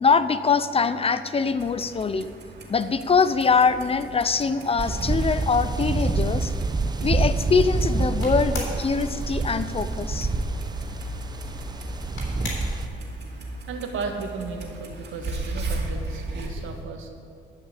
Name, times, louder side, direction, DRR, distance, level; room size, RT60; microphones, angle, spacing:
voice 1, 0.0-2.3 2.7-6.5 7.0-10.3, left 5 dB, 30° left, 13 dB, 0.5 m, -23 dB
Clock, 1.5-16.5, right 2 dB, 60° right, 2.3 m, -37 dB
sound 1, 4.1-16.8, left 2 dB, 75° left, 3.5 m, -44 dB
sound 2, 4.8-12.9, right 3 dB, 20° right, 0.6 m, -27 dB
voice 2, 13.5-17.1, right 4 dB, 85° right, 4 dB, 1.5 m, -35 dB
12.5 x 5.8 x 8.3 m, 2.4 s
cardioid pair, 90°, 20 cm